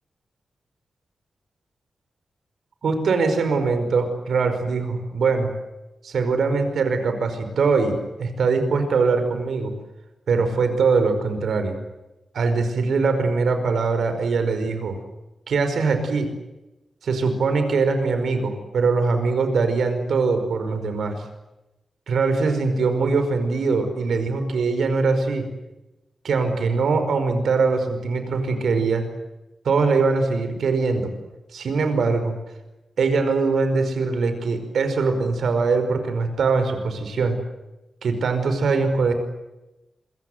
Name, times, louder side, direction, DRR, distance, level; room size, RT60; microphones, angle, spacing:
voice 1, 2.8-5.5 6.0-9.7 10.3-11.7 12.3-15.0 15.5-16.3 17.0-21.2 22.1-25.4 26.2-29.0 29.6-31.1 31.5-32.3 33.0-37.4 38.0-39.1, right 4 dB, 85° right, 8 dB, 5.1 m, -22 dB
27.5 x 23.5 x 8.1 m, 0.99 s
wide cardioid pair, 110°, 0 cm